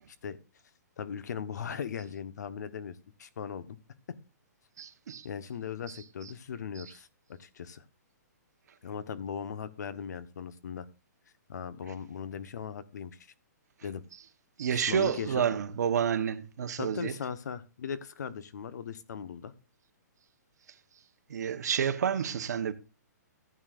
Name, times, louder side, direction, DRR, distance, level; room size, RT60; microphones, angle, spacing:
voice 1, 1.0-3.8 4.1-4.2 5.2-7.8 8.8-10.9 11.5-13.3 13.8-14.0 14.7-15.4 16.8-19.5, left 7 dB, 70° left, 1.1 m, -38 dB
voice 2, 4.8-5.3 6.8-6.9 14.6-17.1 21.3-22.7, right 8 dB, 65° right, 1.2 m, -29 dB
15.0 x 8.7 x 2.5 m
hypercardioid pair, 160°, 10 cm